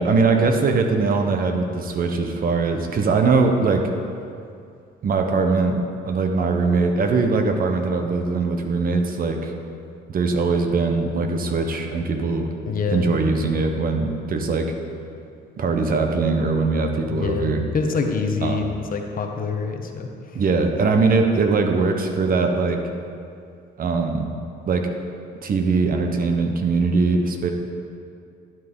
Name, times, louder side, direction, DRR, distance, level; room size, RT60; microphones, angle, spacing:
voice 1, 0.0-3.9 5.0-5.8 6.0-9.5 10.1-12.5 12.9-14.7 15.6-17.6 18.4-18.6 20.3-22.8 23.8-24.4 24.7-24.9 25.4-27.5, right 4 dB, 50° right, 4 dB, 1.1 m, -21 dB
voice 2, 12.6-13.1 17.1-20.1, left 5 dB, 50° left, 4 dB, 1.1 m, -26 dB
12.0 x 8.0 x 3.8 m, 2.4 s
cardioid pair, 90°, 19 cm